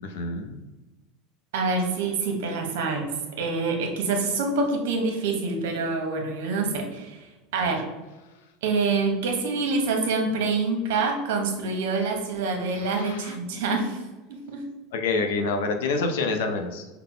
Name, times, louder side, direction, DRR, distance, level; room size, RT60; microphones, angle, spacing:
voice 1, 0.0-0.6 7.6-7.7 12.8-13.4 14.9-16.9, left 3 dB, 90° left, 6 dB, 0.6 m, -27 dB
voice 2, 1.5-3.1 3.4-7.9 8.6-14.0 14.3-14.6, right 3 dB, 80° right, 3 dB, 1.0 m, -26 dB
5.7 x 2.2 x 3.8 m, 1.1 s
supercardioid pair, 170°, 0 cm